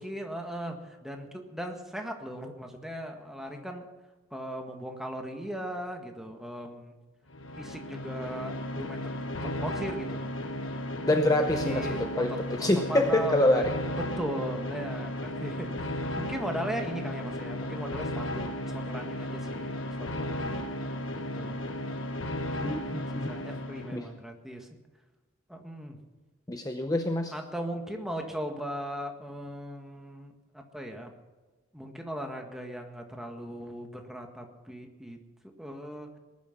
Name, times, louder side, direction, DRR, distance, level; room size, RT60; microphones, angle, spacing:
voice 1, 0.0-3.9 4.3-7.0 7.6-9.1 9.4-10.3 11.6-12.2 12.6-13.7 14.0-19.7 20.0-20.6 21.1-21.6 23.1-24.7 25.5-26.0 27.3-31.1 31.7-35.2 35.4-36.1, equal, ahead, 2 dB, 1.7 m, -38 dB
sound 1, 7.3-24.1, left 1 dB, 65° left, 1.3 m, -35 dB
voice 2, 11.0-13.7 22.6-23.5 23.9-24.1 26.5-27.3, left 1 dB, 15° left, 5 dB, 0.7 m, -26 dB
19.5 x 11.5 x 6.0 m, 1.2 s
head